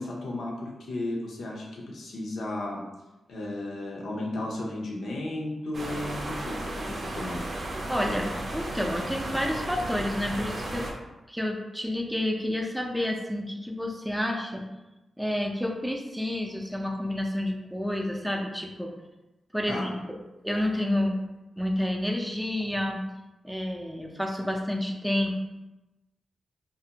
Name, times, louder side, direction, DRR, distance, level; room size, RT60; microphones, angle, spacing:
voice 1, 0.0-2.9 3.3-7.4 19.7-19.9, left 1 dB, 80° left, -2 dB, 0.5 m, -34 dB
sound 1, 5.7-10.9, right 1 dB, 60° right, 0.5 m, -34 dB
voice 2, 7.9-10.9 11.3-14.7 15.2-18.9 19.5-19.9 20.4-21.2 21.6-23.0 23.4-25.4, left 1 dB, 5° right, 1 dB, 0.4 m, -29 dB
2.5 x 2.1 x 2.7 m, 1.0 s
cardioid pair, 65°, 0 cm